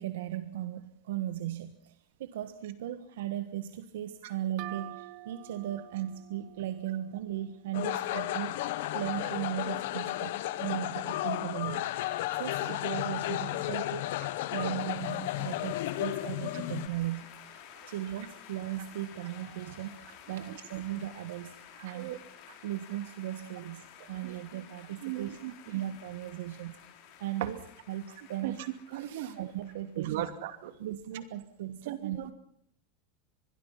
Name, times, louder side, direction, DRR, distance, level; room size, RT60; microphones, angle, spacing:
voice 1, 0.0-8.6 8.9-10.3 10.6-14.1 14.5-21.6 21.8-22.2 22.6-25.4 25.6-26.8 27.2-27.6 27.9-28.6 29.4-30.3 30.8-32.3, right 12 dB, 90° right, 10 dB, 1.5 m, -37 dB
sound 1, 4.6-8.1, right 19 dB, 45° right, 0.9 m, -48 dB
sound 2, 7.7-16.9, left 15 dB, 65° left, 1.4 m, -33 dB
sound 3, 14.7-30.2, left 9 dB, 45° left, 4.6 m, -52 dB
voice 2, 21.9-22.2 24.0-24.3 25.0-25.5 27.4-27.5 28.2-29.4 30.0-30.7 31.8-32.3, right 13 dB, 70° right, 10 dB, 2.6 m, -37 dB
25.5 x 21.5 x 5.8 m, 0.68 s
supercardioid pair, 170°, 0 cm